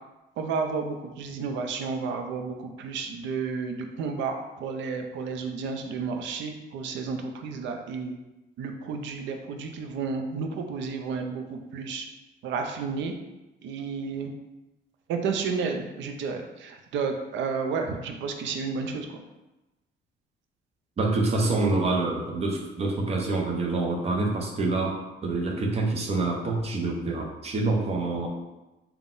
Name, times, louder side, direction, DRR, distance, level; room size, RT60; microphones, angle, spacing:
voice 1, 0.4-8.1 8.6-12.1 12.4-13.1 13.6-14.3 15.1-19.2, right 5 dB, 75° right, 5 dB, 0.5 m, -31 dB
voice 2, 21.0-25.0 25.2-28.3, right 3 dB, 35° right, -1 dB, 0.6 m, -26 dB
4.0 x 2.2 x 3.7 m, 1.0 s
cardioid pair, 160°, 19 cm